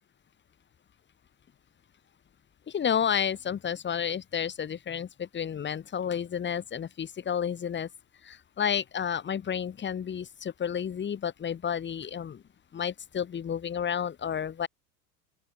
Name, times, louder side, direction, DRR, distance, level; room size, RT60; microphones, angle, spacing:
voice 1, 2.7-7.9 8.2-12.4 12.7-14.7, left 8 dB, 25° left, 3.5 m, -31 dB
open air
figure-of-eight pair, 90°, 46 cm